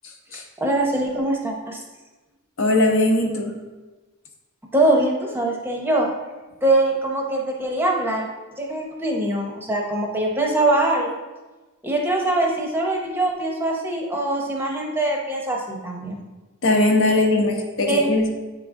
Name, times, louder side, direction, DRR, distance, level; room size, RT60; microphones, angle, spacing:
voice 1, 0.6-1.8 4.7-6.1 6.6-8.3 8.6-11.2 11.8-16.2 17.9-18.1, right 1 dB, 10° right, 0 dB, 0.7 m, -22 dB
voice 2, 2.6-3.5 16.6-18.3, left 2 dB, 60° left, 2 dB, 0.9 m, -19 dB
8.2 x 3.7 x 3.6 m, 1.2 s
head